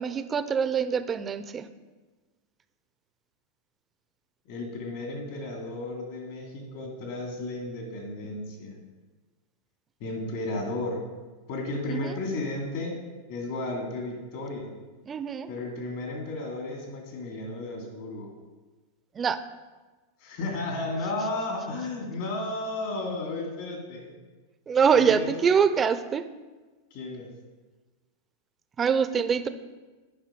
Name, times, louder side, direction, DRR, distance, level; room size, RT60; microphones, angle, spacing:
voice 1, 0.0-1.7 11.9-12.1 15.1-15.5 19.2-19.4 24.7-26.2 28.8-29.5, right 6 dB, 25° right, 12 dB, 0.5 m, -24 dB
voice 2, 4.5-8.8 10.0-11.0 11.5-14.7 15.5-18.3 20.2-24.1 24.9-25.3 26.9-27.3, left 2 dB, 60° left, 1 dB, 2.6 m, -33 dB
8.8 x 5.5 x 5.2 m, 1.3 s
hypercardioid pair, 125°, 0 cm